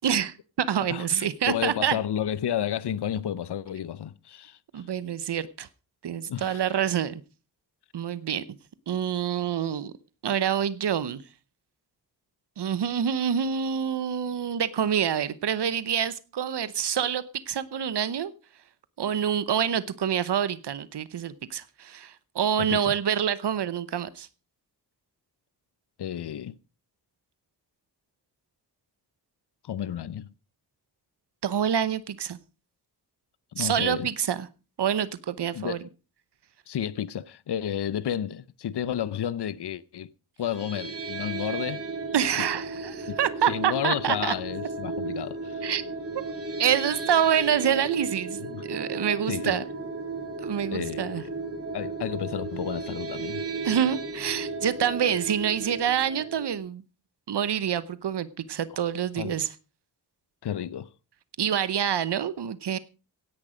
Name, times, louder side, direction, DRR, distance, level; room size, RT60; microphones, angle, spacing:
voice 1, 0.0-2.0 4.7-5.7 6.0-7.2 7.9-8.4 8.9-9.9 10.2-11.2 12.6-18.3 19.0-24.3 31.4-32.4 33.6-34.5 34.8-35.8 42.1-44.3 45.6-45.8 46.6-49.6 50.4-51.2 53.6-56.8 57.3-59.5 61.4-62.8, right 8 dB, 85° right, 0.9 m, -27 dB
voice 2, 0.9-4.6 6.3-6.6 22.6-22.9 26.0-26.6 29.6-30.3 33.5-34.1 35.5-35.8 36.7-40.1 40.4-41.8 43.1-43.2 43.5-45.7 48.5-48.6 49.3-49.6 50.7-51.3 51.7-53.4 59.2-59.4 60.4-60.9, left 10 dB, 80° left, 0.7 m, -31 dB
sound 1, 40.4-56.6, right 3 dB, 35° right, 3.0 m, -35 dB
16.5 x 10.5 x 5.0 m
wide cardioid pair, 130°, 40 cm